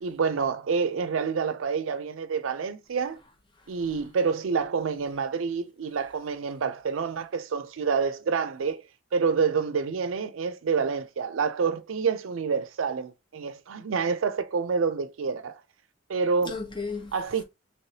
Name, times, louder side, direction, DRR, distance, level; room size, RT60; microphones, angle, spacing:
voice 1, 0.0-3.2 3.7-8.8 9.1-15.6 16.1-16.5 17.1-17.4, right 5 dB, 90° right, 0.5 m, -28 dB
voice 2, 3.1-4.1 16.4-17.4, left 4 dB, 25° left, 0.6 m, -38 dB
3.2 x 3.0 x 2.7 m
head